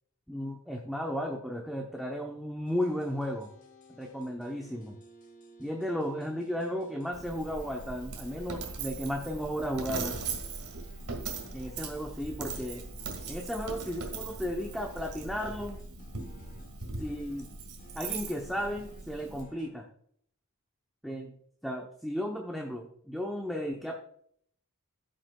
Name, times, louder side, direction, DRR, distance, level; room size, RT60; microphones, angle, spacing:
voice 1, 0.3-3.5 3.9-5.0 5.6-10.2 11.5-12.8 13.3-15.8 17.0-17.5 18.0-19.9 21.0-21.3 21.6-23.9, equal, ahead, 1 dB, 0.7 m, -34 dB
sound 1, 2.7-19.7, equal, 35° left, 1.1 m, -56 dB
Coin (dropping), 7.1-19.4, right 4 dB, 90° right, 1.9 m, -40 dB
16.0 x 6.4 x 2.3 m, 0.65 s
head